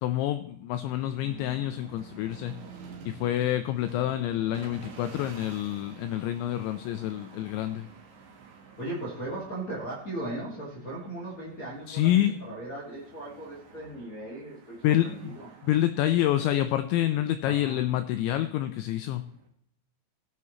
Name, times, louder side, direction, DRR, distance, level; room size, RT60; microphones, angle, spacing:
voice 1, 0.0-2.6 3.0-7.9 11.9-12.4 14.8-15.3 15.6-19.2, left 13 dB, 90° left, 10 dB, 2.6 m, -27 dB
sound 1, 0.9-19.5, right 5 dB, 65° right, 1.9 m, -50 dB
voice 2, 8.8-15.5 17.4-17.8, right 1 dB, 50° left, -6 dB, 1.0 m, -38 dB
16.5 x 8.4 x 3.1 m, 0.67 s
omnidirectional pair, 5.9 m